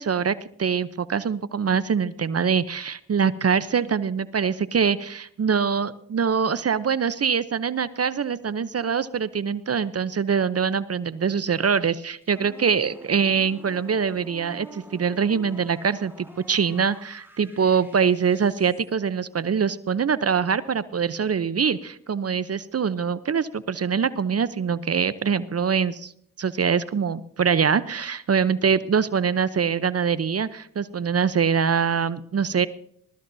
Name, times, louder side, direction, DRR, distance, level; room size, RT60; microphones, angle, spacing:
voice 1, 0.0-26.1 26.4-32.7, right 6 dB, 40° right, 16 dB, 0.7 m, -24 dB
sound 1, 12.2-18.9, right 2 dB, 5° right, 3.4 m, -47 dB
20.5 x 13.5 x 2.7 m, 0.66 s
supercardioid pair, 50°, 37 cm